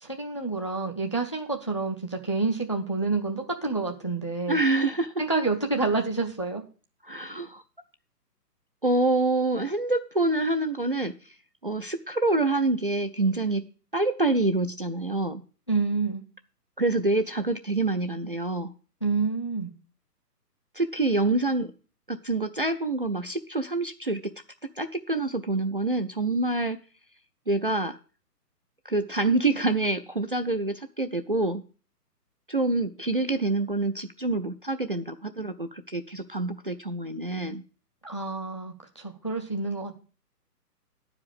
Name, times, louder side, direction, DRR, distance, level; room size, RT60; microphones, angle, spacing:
voice 1, 0.0-4.6 5.2-6.6 15.7-16.2 19.0-19.7 38.0-39.9, right 3 dB, 20° left, 3 dB, 0.4 m, -28 dB
voice 2, 4.5-5.1 7.0-7.6 8.8-11.1 11.6-13.7 13.9-15.4 16.8-18.7 20.7-21.7 22.1-24.3 24.8-26.8 27.5-28.0 28.9-31.6 32.5-37.6, right 2 dB, 35° right, 9 dB, 0.4 m, -26 dB
9.5 x 4.9 x 7.9 m, 0.37 s
figure-of-eight pair, 140°, 48 cm